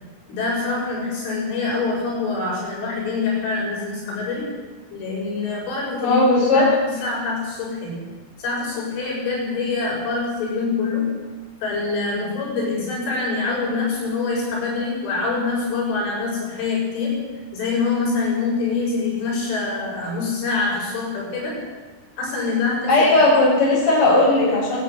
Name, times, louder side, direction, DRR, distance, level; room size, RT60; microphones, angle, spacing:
voice 1, 0.3-4.6 4.9-6.2 6.5-8.1 8.4-11.2 11.6-21.6 22.2-23.2, left 4 dB, 70° left, -4 dB, 9.4 m, -25 dB
voice 2, 6.0-6.6 22.9-24.8, left 2 dB, 25° left, -5 dB, 7.8 m, -16 dB
24.5 x 11.5 x 9.2 m, 1.3 s
omnidirectional pair, 5.7 m